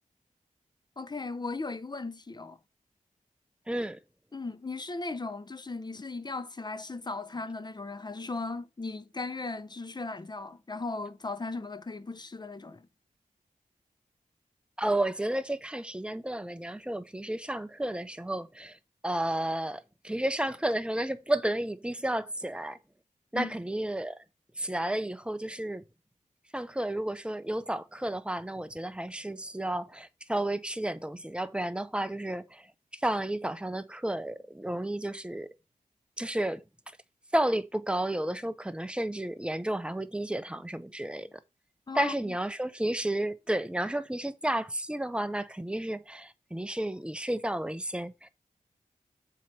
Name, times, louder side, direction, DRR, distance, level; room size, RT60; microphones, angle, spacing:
voice 1, 1.0-2.6 4.3-12.9 23.3-23.6 41.9-42.3, left 3 dB, 30° left, 0.7 m, -37 dB
voice 2, 3.7-4.0 14.8-18.8 19.0-22.8 23.3-24.2 24.6-25.8 26.5-32.6 33.0-35.5 36.2-36.6 37.3-41.3 41.9-48.3, right 1 dB, 5° right, 0.7 m, -32 dB
7.4 x 3.1 x 5.9 m
wide cardioid pair, 65°, 14 cm